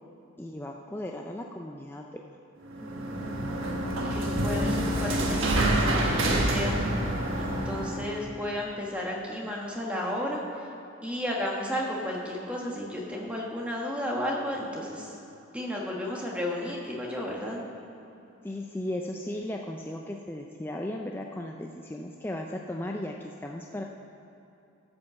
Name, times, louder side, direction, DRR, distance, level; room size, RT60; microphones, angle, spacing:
voice 1, 0.4-2.2 18.4-23.8, left 1 dB, 10° left, 1 dB, 0.3 m, -36 dB
sound 1, 2.7-8.2, right 1 dB, 70° right, 1.3 m, -27 dB
voice 2, 2.8-3.5 3.8-6.8 7.4-10.4 11.0-15.2 15.5-17.6, left 1 dB, 5° right, -2 dB, 1.3 m, -33 dB
13.0 x 5.4 x 7.0 m, 2.8 s
head